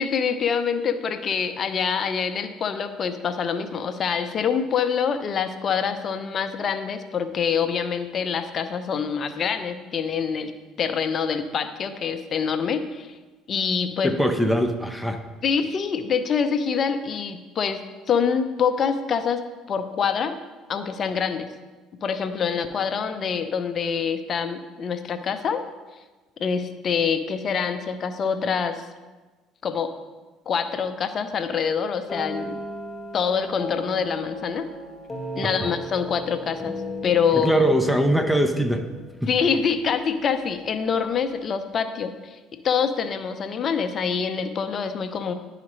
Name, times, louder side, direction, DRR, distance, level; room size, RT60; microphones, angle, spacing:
voice 1, 0.0-10.5 10.8-13.2 13.5-14.2 15.4-20.4 20.7-21.5 22.0-25.6 26.4-28.9 29.6-29.9 30.5-32.6 33.1-34.7 35.3-36.8 37.0-37.6 39.3-42.4 42.6-45.3, left 6 dB, 50° left, 9 dB, 0.6 m, -25 dB
voice 2, 14.0-15.2 35.6-35.7 37.3-38.8 39.2-39.3, equal, ahead, 6 dB, 0.7 m, -22 dB
sound 1, 32.1-39.8, equal, 20° left, 1.3 m, -36 dB
10.5 x 4.9 x 3.2 m, 1.3 s
supercardioid pair, 75°, 0 cm